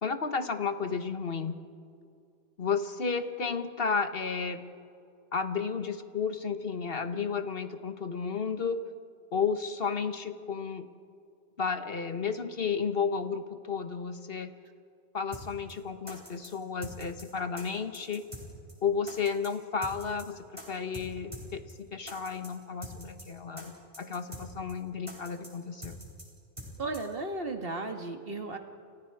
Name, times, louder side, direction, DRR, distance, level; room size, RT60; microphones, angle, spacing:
voice 1, 0.0-1.6 2.6-4.6 5.3-8.8 9.3-10.9 11.6-14.5 15.1-18.2 18.8-26.0, left 5 dB, 65° left, 8 dB, 1.5 m, -32 dB
sound 1, 15.3-15.4 15.7-15.8 16.1-16.5 16.8-17.2 17.6-17.7 17.9-18.4 18.7-18.8 19.1-19.5 19.8-20.2 20.6-20.7 20.9-21.1 21.3-21.4 21.7-21.8 22.1-22.5 22.8-23.2 23.6-23.7 23.9-24.4 24.7-24.8 25.1-25.5 25.8-26.2 26.6-26.7 26.9-27.0, equal, 30° right, 5.3 m, -43 dB
voice 2, 26.8-28.6, right 2 dB, 60° right, 5 dB, 2.0 m, -35 dB
30.0 x 29.0 x 4.8 m, 2.5 s
omnidirectional pair, 1.1 m